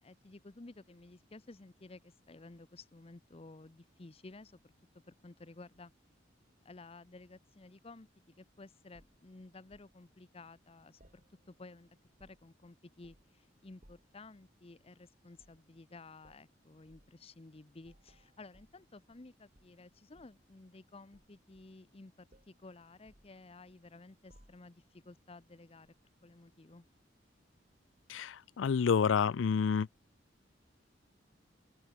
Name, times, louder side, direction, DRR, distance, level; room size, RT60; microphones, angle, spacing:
voice 1, 0.0-4.7 5.1-5.9 6.6-8.1 8.4-25.9 26.2-26.9, left 3 dB, 30° left, 0.8 m, -54 dB
sound 1, 8.9-9.9 11.0-11.7 12.0-12.6 13.0-13.4 13.8-14.2 15.3-15.7 16.2-16.5 16.9-17.1 17.8-19.3 19.5-20.5 21.1-22.0 22.3-22.6 23.1-23.9 24.3-24.9 25.8-26.0, equal, 40° right, 6.1 m, -65 dB
voice 2, 28.1-29.9, left 6 dB, 90° left, 0.4 m, -29 dB
open air
head